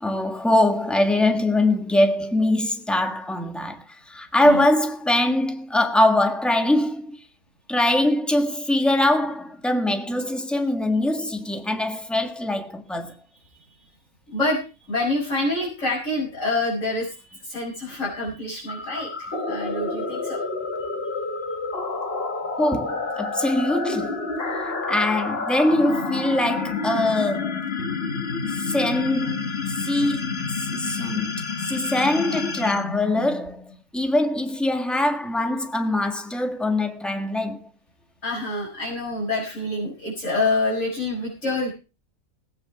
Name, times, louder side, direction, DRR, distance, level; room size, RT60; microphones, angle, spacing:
voice 1, 0.0-7.2 7.7-13.2 22.6-24.2 24.6-27.6 28.5-30.2 30.5-31.3 31.6-33.6 33.9-37.7, left 1 dB, ahead, 1.5 m, -23 dB
voice 2, 14.3-14.6 14.9-20.4 20.8-20.9 29.8-29.9 33.1-33.3 38.2-41.7, left 2 dB, 65° left, 6.3 m, -27 dB
Space climax, 18.7-33.8, left 4 dB, 45° left, 1.8 m, -29 dB
18.0 x 8.8 x 4.8 m
omnidirectional pair, 1.4 m